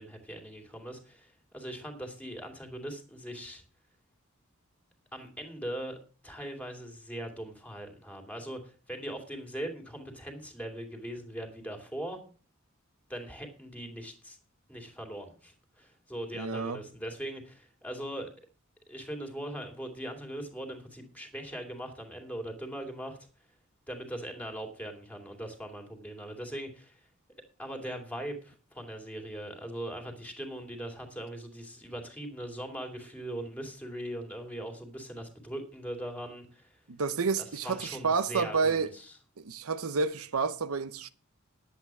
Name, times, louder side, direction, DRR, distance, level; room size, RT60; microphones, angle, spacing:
voice 1, 0.0-3.6 5.1-6.0 6.2-12.2 13.1-14.4 14.7-18.3 18.9-23.2 23.9-27.1 27.6-36.8 37.4-39.1, right 1 dB, 5° left, 2.5 m, -40 dB
voice 2, 16.4-16.8 36.9-38.9 39.4-41.1, right 4 dB, 90° right, 0.7 m, -30 dB
10.5 x 8.3 x 6.0 m
head